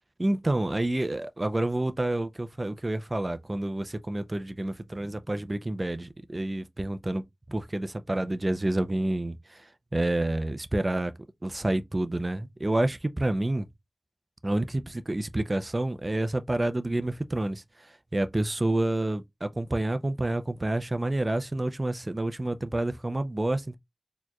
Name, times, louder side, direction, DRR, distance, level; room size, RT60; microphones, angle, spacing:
voice 1, 0.2-11.1 11.4-13.7 14.4-23.8, right 1 dB, 35° right, 0.5 m, -29 dB
4.3 x 2.9 x 2.2 m
wide cardioid pair, 70°, 0 cm